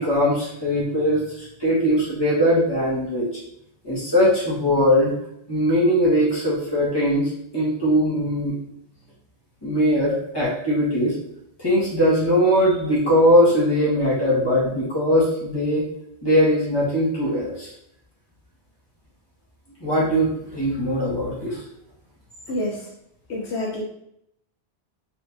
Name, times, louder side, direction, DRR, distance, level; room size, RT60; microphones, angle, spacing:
voice 1, 0.0-3.3 3.8-5.1 5.5-8.5 9.6-11.1 11.6-15.8 16.2-17.7 19.8-21.6, equal, 20° left, -8 dB, 1.7 m, -20 dB
voice 2, 22.5-22.9 23.3-23.8, left 1 dB, 85° left, -3 dB, 1.2 m, -27 dB
4.4 x 3.4 x 2.7 m, 0.75 s
omnidirectional pair, 1.1 m